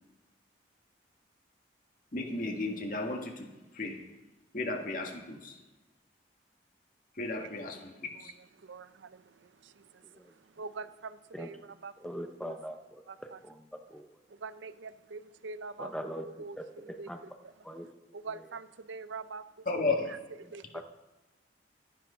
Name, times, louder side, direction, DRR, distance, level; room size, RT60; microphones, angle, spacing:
voice 1, 2.1-3.5 3.7-4.0 4.5-5.6 7.2-7.9 8.2-8.3 19.7-20.1, left 3 dB, 45° left, 1.7 m, -33 dB
voice 2, 8.6-10.0 10.6-12.6 13.1-13.4 14.3-15.9 16.2-17.1 17.4-19.4 19.8-20.2 20.5-20.6, right 4 dB, 85° right, 0.5 m, -44 dB
voice 3, 12.0-13.0 13.4-13.6 13.9-14.1 15.8-16.3 16.6-16.7 17.1-17.2 17.6-17.9 20.7-20.8, equal, 5° left, 0.7 m, -40 dB
12.5 x 9.1 x 5.6 m
head